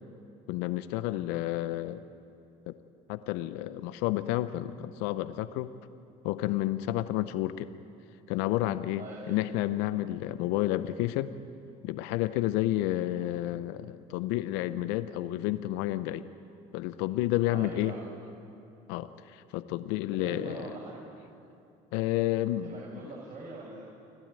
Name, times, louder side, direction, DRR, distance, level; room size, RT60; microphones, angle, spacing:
voice 1, 0.5-2.0 2.7-2.8 3.1-5.7 6.2-7.7 8.3-11.3 11.8-16.2 16.7-17.9 18.9-20.7 21.9-23.1, left 15 dB, 75° left, 13 dB, 0.7 m, -30 dB
voice 2, 8.9-9.5 17.5-18.0 20.2-21.1 22.6-23.8, right 2 dB, 45° right, -5 dB, 6.7 m, -42 dB
29.5 x 12.0 x 9.0 m, 2.6 s
supercardioid pair, 80°, 18 cm